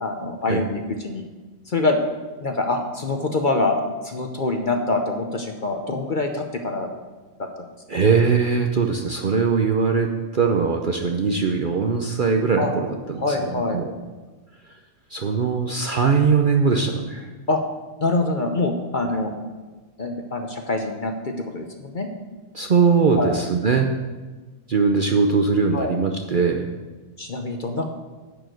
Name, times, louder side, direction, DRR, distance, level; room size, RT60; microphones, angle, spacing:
voice 1, 0.0-1.2 1.7-2.0 2.4-3.8 4.0-6.9 7.9-8.0 12.6-12.7 13.2-13.8 17.5-17.6 18.0-19.3 20.0-22.1 23.2-23.3 25.7-25.9 27.2-27.8, left 2 dB, 45° left, 4 dB, 0.8 m, -25 dB
voice 2, 7.9-13.9 15.1-17.3 22.5-23.9 24.7-26.7, right 5 dB, 50° right, 3 dB, 0.6 m, -21 dB
10.5 x 5.0 x 7.7 m, 1.3 s
omnidirectional pair, 1.5 m